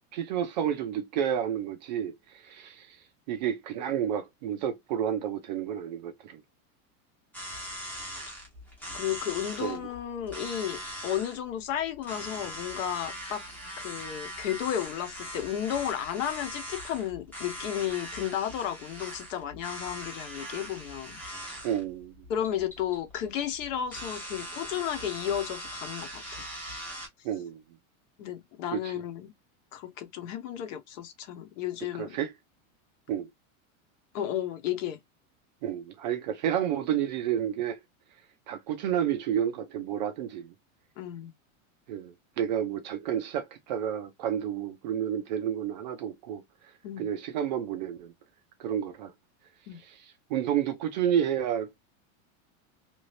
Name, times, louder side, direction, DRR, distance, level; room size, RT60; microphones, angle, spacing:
voice 1, 0.1-3.0 3.3-6.4 9.6-9.8 21.6-22.1 27.2-27.6 28.7-28.9 32.0-32.3 33.1-33.3 35.6-37.8 38.5-40.5 41.9-46.4 47.0-48.1 48.6-49.1 49.9-50.0 50.3-51.7, right 9 dB, 35° right, 0.4 m, -30 dB
sound 1, 7.3-27.1, equal, 5° left, 0.6 m, -41 dB
voice 2, 8.9-13.4 13.8-21.2 22.3-26.5 28.2-29.3 29.7-32.2 34.1-35.0 41.0-41.3 46.8-47.1 49.7-49.8, left 10 dB, 60° left, 1.1 m, -33 dB
2.9 x 2.7 x 3.1 m
supercardioid pair, 170°, 42 cm